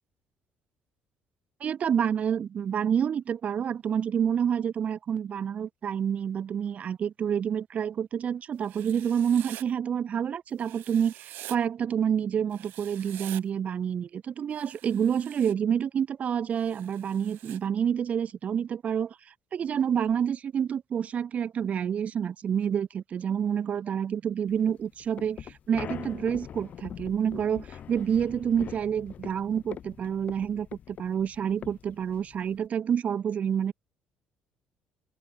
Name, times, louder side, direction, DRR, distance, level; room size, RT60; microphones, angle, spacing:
voice 1, 1.6-19.1 19.5-33.7, right 8 dB, 45° right, 1.3 m, -28 dB
Writing, 8.6-9.6 10.6-11.6 12.5-13.4 14.5-15.5 16.6-17.6, right 16 dB, 80° right, 4.3 m, -46 dB
sound 1, 24.5-32.7, left 9 dB, 50° left, 2.8 m, -43 dB
cardioid pair, 115°, 3 cm